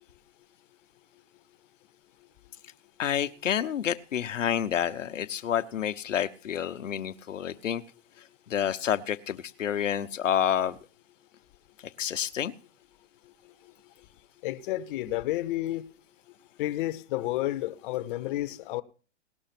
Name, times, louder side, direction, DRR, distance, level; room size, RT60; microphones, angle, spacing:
voice 1, 3.0-7.8 8.5-10.8 12.0-12.5, left 9 dB, 90° left, 1.0 m, -29 dB
voice 2, 14.4-15.8 16.6-18.8, left 15 dB, 45° left, 0.9 m, -31 dB
19.0 x 6.3 x 5.9 m
hypercardioid pair, 135°, 37 cm